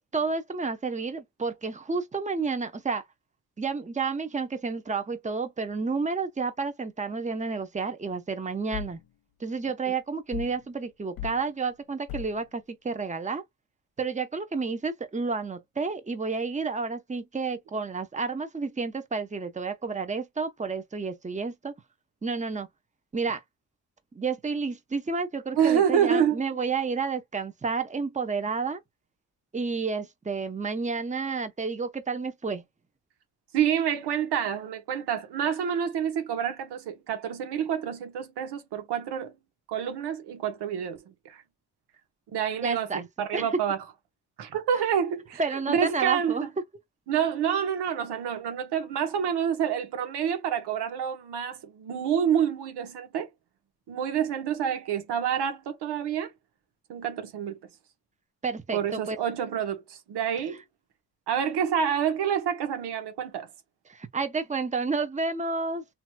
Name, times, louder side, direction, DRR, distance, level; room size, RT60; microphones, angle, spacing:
voice 1, 0.0-3.0 3.6-9.0 9.4-13.4 14.0-21.7 22.2-22.7 23.1-23.4 24.1-28.8 29.5-32.6 42.6-43.0 43.3-43.5 45.4-46.4 58.4-59.2 63.9-65.8, right 4 dB, 20° right, 0.8 m, -30 dB
sound 1, 8.7-9.0 10.3-10.6 11.2-11.4 12.1-12.4, left 8 dB, 60° left, 0.6 m, -37 dB
voice 2, 25.5-26.4 33.5-39.3 39.7-41.4 42.3-43.8 44.4-46.4 47.1-53.3 53.9-56.3 56.9-57.6 58.7-60.6 61.3-63.5, right 8 dB, 85° right, 0.9 m, -28 dB
3.1 x 2.8 x 2.2 m
supercardioid pair, 55°, 39 cm